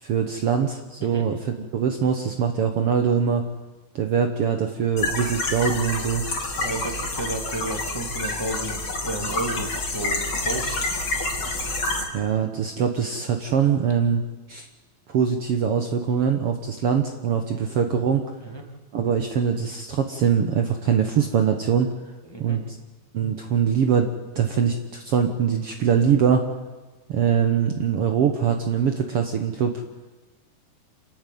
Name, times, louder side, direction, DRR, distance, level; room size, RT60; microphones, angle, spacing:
voice 1, 0.0-3.4 3.9-6.2 11.7-11.8 12.1-14.2 14.5-14.7 15.1-18.2 18.9-21.9 22.4-22.6 23.1-24.1 24.3-26.5 27.1-29.7, right 7 dB, 90° right, 5 dB, 1.2 m, -23 dB
sound 1, 5.0-12.0, left 2 dB, 35° left, 3.3 m, -28 dB
voice 2, 6.6-10.9 17.5-17.7 18.4-18.6 22.2-22.6, right 2 dB, 10° left, 2 dB, 1.7 m, -32 dB
28.0 x 13.0 x 9.4 m, 1.3 s
omnidirectional pair, 4.6 m